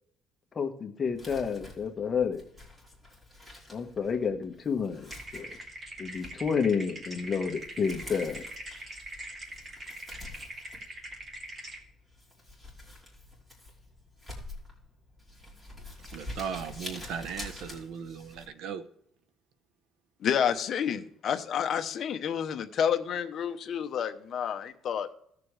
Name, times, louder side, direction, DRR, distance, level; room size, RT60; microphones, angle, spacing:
voice 1, 0.5-2.4 3.7-5.5 6.0-8.4, left 6 dB, 30° left, 1.3 m, -30 dB
Crumpling crinkling, 1.1-18.5, left 1 dB, 10° right, 3.2 m, -47 dB
sound 1, 5.1-11.8, right 1 dB, 25° right, 2.0 m, -43 dB
voice 2, 16.1-18.8, right 7 dB, 75° right, 0.9 m, -37 dB
voice 3, 20.2-25.1, left 8 dB, 45° left, 0.9 m, -29 dB
17.0 x 6.8 x 3.3 m
cardioid pair, 140°, 0 cm